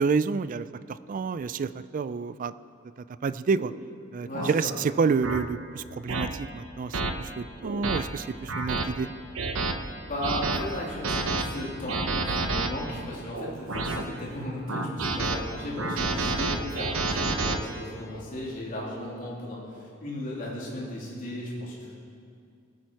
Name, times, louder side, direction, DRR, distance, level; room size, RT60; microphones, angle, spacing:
voice 1, 0.0-2.5 3.2-3.7 4.1-9.1, right 5 dB, 40° right, 15 dB, 0.3 m, -29 dB
sound 1, 3.5-3.7 4.3-4.5 5.2-5.4 6.1-6.3 6.9-7.1 7.6-8.0 8.5-8.9 9.4-9.7 10.2-10.6 11.0-11.4 11.9-12.7 13.3-14.0 14.7-15.4 15.8-17.6, right 3 dB, 85° right, 1.0 m, -28 dB
voice 2, 4.2-4.7 10.0-22.0, left 1 dB, 45° left, -5 dB, 3.2 m, -35 dB
20.0 x 8.9 x 4.7 m, 2.3 s
head